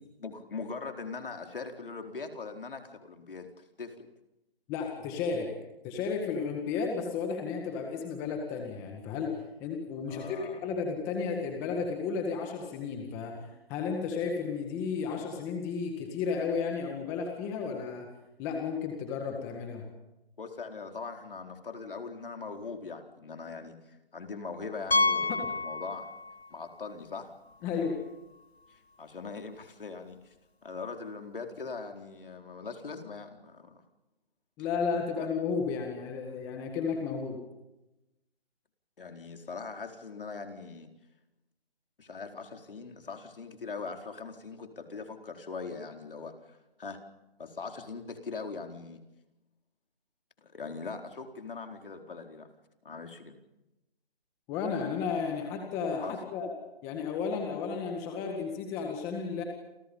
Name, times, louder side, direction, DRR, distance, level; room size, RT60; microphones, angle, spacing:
voice 1, 0.2-4.1 10.1-10.6 20.4-26.1 26.5-27.3 27.6-27.8 28.7-30.3 30.6-33.8 35.2-35.3 39.0-40.9 42.0-47.0 47.4-49.0 50.4-52.5 52.8-53.4 56.0-56.1, left 4 dB, 60° left, 5 dB, 4.4 m, -41 dB
voice 2, 4.7-5.5 5.8-9.3 9.6-18.1 18.4-19.8 25.3-25.4 27.6-28.0 34.6-37.4 54.5-56.5 56.8-59.4, left 5 dB, 10° left, 3 dB, 1.8 m, -33 dB
Piano, 24.9-26.5 26.8-26.9 27.5-27.6 27.9-28.0 30.0-30.1, left 2 dB, 80° left, 2.3 m, -29 dB
29.5 x 28.5 x 5.5 m, 0.97 s
hypercardioid pair, 170°, 31 cm